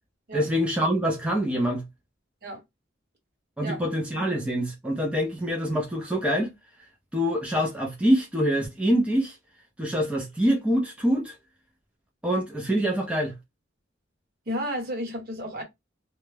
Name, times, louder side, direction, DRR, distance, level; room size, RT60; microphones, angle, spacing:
voice 1, 0.3-1.8 3.6-6.5 7.1-9.4 9.8-11.3 12.2-13.3, equal, 5° right, 0.5 m, -25 dB
voice 2, 14.5-15.6, equal, 50° right, 1.0 m, -32 dB
2.2 x 2.1 x 3.1 m
head